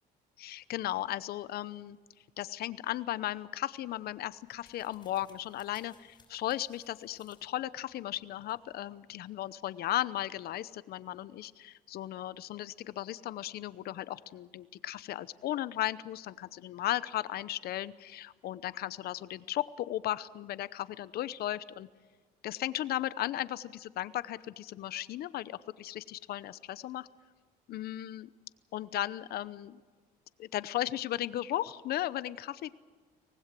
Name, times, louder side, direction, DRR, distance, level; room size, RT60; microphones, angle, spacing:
voice 1, 0.4-2.0 2.4-21.9 22.4-27.1 27.7-28.3 28.7-29.8 30.4-32.7, left 13 dB, 65° left, 17 dB, 0.8 m, -36 dB
sound 1, 3.7-9.0, left 4 dB, 25° left, 5.6 m, -66 dB
24.0 x 19.0 x 7.6 m, 1.5 s
cardioid pair, 110°, 17 cm